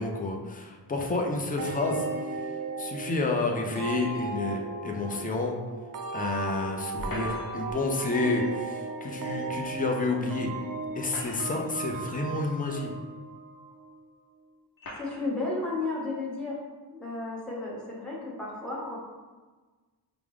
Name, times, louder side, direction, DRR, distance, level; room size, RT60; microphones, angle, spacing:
voice 1, 0.0-2.0 2.8-5.6 6.1-10.5 11.0-12.9, left 3 dB, 20° left, 1 dB, 0.5 m, -30 dB
sound 1, 1.6-14.0, right 3 dB, 50° right, 0.4 m, -36 dB
sound 2, 7.0-7.8 9.5-9.6 10.8-11.8 12.6-12.7 13.7-13.8 14.8-15.3, left 1 dB, 50° left, 0.7 m, -41 dB
voice 2, 15.0-16.6 16.9-19.0, left 2 dB, ahead, -6 dB, 0.9 m, -33 dB
4.6 x 2.0 x 3.6 m, 1.3 s
wide cardioid pair, 90°, 42 cm